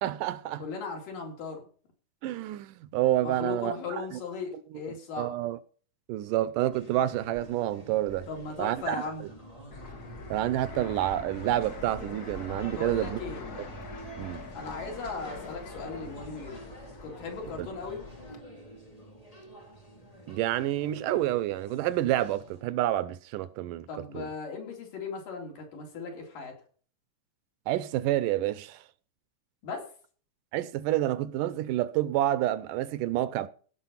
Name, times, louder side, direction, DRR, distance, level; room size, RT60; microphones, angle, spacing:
voice 1, 0.0-0.6 2.2-3.7 4.1-4.2 5.2-5.6 6.1-8.3 8.6-9.0 10.3-13.2 14.2-14.4 17.6-17.7 20.3-23.9 24.1-24.3 27.7-28.8 30.5-33.5, right 14 dB, 85° right, 2.3 m, -28 dB
voice 2, 0.6-1.6 3.2-5.3 8.3-9.3 12.7-13.4 14.6-16.7 17.0-18.0 23.9-26.6 29.6-29.9, left 4 dB, 80° left, 5.2 m, -37 dB
sound 1, 6.7-22.6, right 1 dB, 10° left, 4.4 m, -48 dB
Fixed-wing aircraft airplane, 9.7-18.4, left 2 dB, 40° left, 1.5 m, -43 dB
17.0 x 5.8 x 5.7 m
omnidirectional pair, 3.8 m